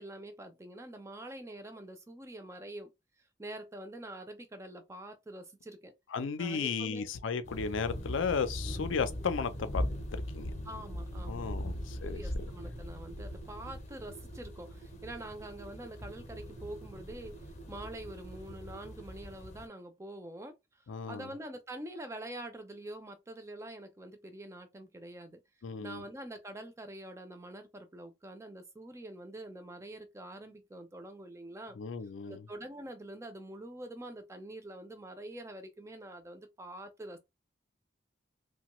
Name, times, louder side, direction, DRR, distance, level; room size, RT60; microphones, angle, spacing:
voice 1, 0.0-2.9 3.4-5.9 6.4-7.1 10.6-25.4 25.8-31.8 32.2-37.2, right 1 dB, 15° right, 0.4 m, -45 dB
voice 2, 6.1-9.8 10.1-10.5 11.3-12.5 20.9-21.3 25.6-26.0 31.8-32.4, left 5 dB, 85° left, 0.5 m, -34 dB
sound 1, 7.4-19.7, left 1 dB, 35° left, 0.6 m, -40 dB
sound 2, 9.8-19.1, right 12 dB, 65° right, 0.6 m, -53 dB
2.8 x 2.2 x 2.9 m
head